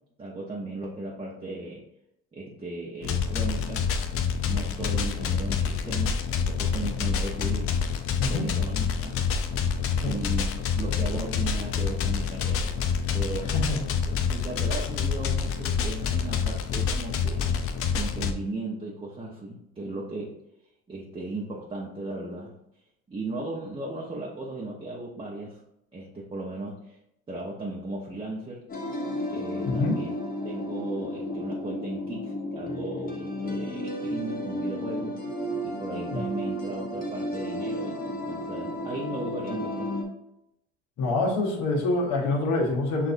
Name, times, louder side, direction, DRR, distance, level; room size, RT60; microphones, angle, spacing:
voice 1, 0.2-1.8 2.3-3.9 4.4-8.0 8.3-9.2 10.0-12.7 13.1-13.5 14.3-20.3 20.9-22.6 23.1-25.6 25.9-27.0 27.3-28.6 29.3-30.2 30.4-35.2 35.6-39.9, right 2 dB, 15° right, -4 dB, 0.8 m, -36 dB
sound 1, 3.0-18.3, left 6 dB, 45° left, 0.6 m, -27 dB
sound 2, 28.7-40.0, left 1 dB, 25° left, 1.0 m, -33 dB
voice 2, 29.6-30.0 36.1-36.2 41.0-43.1, left 2 dB, 65° left, -1 dB, 1.4 m, -26 dB
6.1 x 2.6 x 2.6 m, 0.83 s
supercardioid pair, 90°, 31 cm